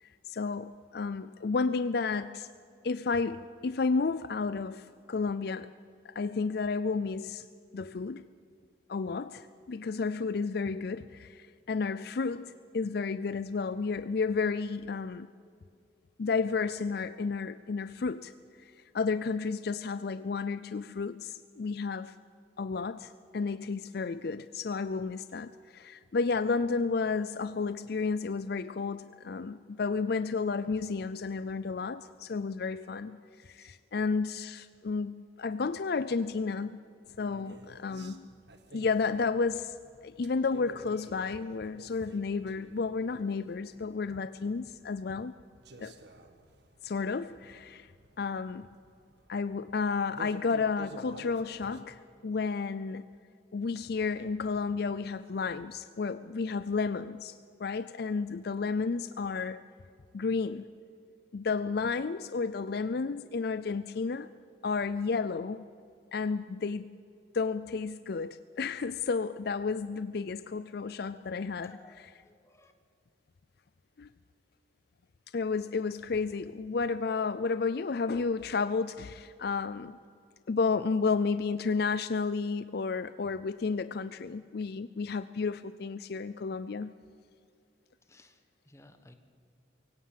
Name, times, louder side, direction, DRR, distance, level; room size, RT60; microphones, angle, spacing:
voice 1, 0.0-2.5 2.8-5.7 6.0-7.5 7.7-8.3 8.9-15.3 16.2-18.3 18.6-22.2 22.6-36.8 37.2-38.3 38.7-45.3 45.8-45.9 46.8-47.9 48.2-48.7 49.3-53.0 53.5-59.6 60.1-60.7 61.3-64.3 64.6-65.7 66.1-67.0 67.3-72.2 74.0-74.1 75.3-80.0 80.5-86.9, left 4 dB, 55° left, 14 dB, 0.4 m, -32 dB
sound 1, 37.1-51.8, right 2 dB, 60° right, 1.5 m, -53 dB
voice 2, 71.6-72.7 88.0-89.1, left 2 dB, 15° left, 7 dB, 1.4 m, -58 dB
23.5 x 16.5 x 7.5 m, 2.4 s
head